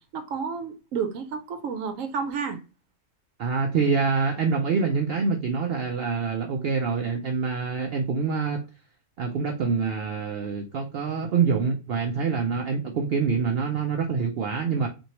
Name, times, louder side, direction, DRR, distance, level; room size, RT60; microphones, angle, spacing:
voice 1, 0.1-2.6, right 6 dB, 90° right, 1.1 m, -31 dB
voice 2, 3.4-8.6 9.2-14.9, right 5 dB, 60° right, 0.7 m, -26 dB
4.4 x 2.7 x 2.8 m
omnidirectional pair, 1.3 m